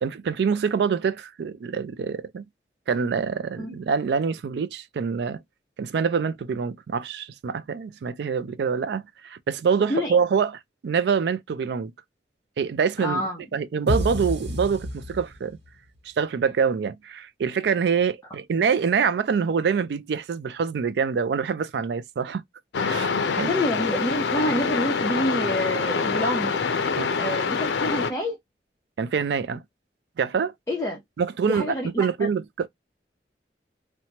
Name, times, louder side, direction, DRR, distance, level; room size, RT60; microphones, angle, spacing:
voice 1, 0.0-2.5 2.9-5.4 5.8-11.9 12.6-13.2 13.5-15.6 16.1-22.4 22.8-23.5 27.0-27.1 29.0-29.6 30.2-30.5 31.2-32.7, right 6 dB, 70° right, 0.3 m, -25 dB
voice 2, 13.0-13.4 23.5-26.5 27.2-28.4 30.7-31.0 31.5-32.3, equal, 15° left, 0.7 m, -27 dB
sound 1, 13.9-15.7, left 1 dB, 85° right, 1.0 m, -29 dB
sound 2, 22.7-28.1, left 5 dB, 85° left, 0.5 m, -25 dB
2.8 x 2.2 x 2.7 m
head